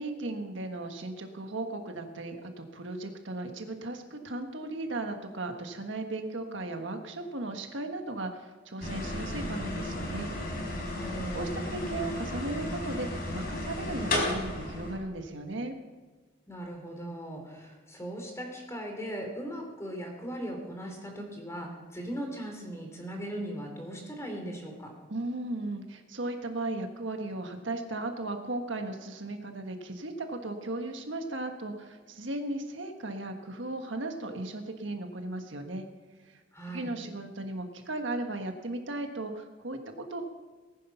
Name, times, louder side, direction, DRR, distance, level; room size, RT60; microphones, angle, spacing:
voice 1, 0.0-10.3 11.3-15.7 25.1-35.8 36.2-36.4 36.7-40.2, right 2 dB, 65° right, 5 dB, 1.5 m, -36 dB
sound 1, 8.8-15.0, left 1 dB, 50° left, 3.9 m, -34 dB
voice 2, 11.0-11.9 16.5-24.9 36.5-36.9, right 1 dB, 15° left, 2 dB, 2.9 m, -39 dB
19.5 x 9.8 x 5.7 m, 1.4 s
head